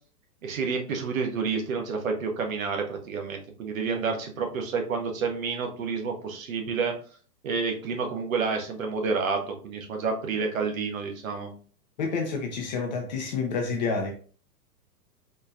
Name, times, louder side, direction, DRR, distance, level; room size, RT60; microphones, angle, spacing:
voice 1, 0.4-7.0 7.4-11.5, right 5 dB, 55° right, 1.0 m, -29 dB
voice 2, 12.0-14.1, left 4 dB, 30° left, 0.4 m, -29 dB
4.2 x 2.6 x 2.3 m
figure-of-eight pair, 105°, 49 cm